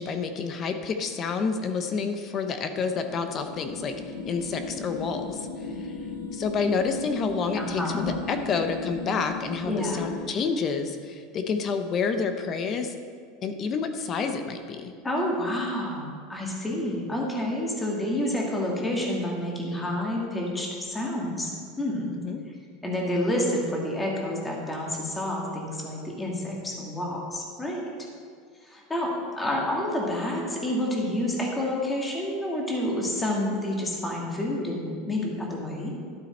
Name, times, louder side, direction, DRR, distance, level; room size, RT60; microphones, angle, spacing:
voice 1, 0.0-3.9 4.2-5.4 6.3-13.0 13.4-14.9 22.2-22.4, left 5 dB, 30° left, 7 dB, 0.8 m, -29 dB
sound 1, 2.7-10.3, left 3 dB, 90° left, 1.0 m, -37 dB
voice 2, 7.5-8.0 9.7-10.1 15.0-16.0 16.3-22.2 22.5-22.6 22.8-27.8 28.6-35.9, left 1 dB, 10° left, -2 dB, 1.8 m, -29 dB
12.0 x 7.6 x 4.3 m, 2.1 s
supercardioid pair, 150°, 0 cm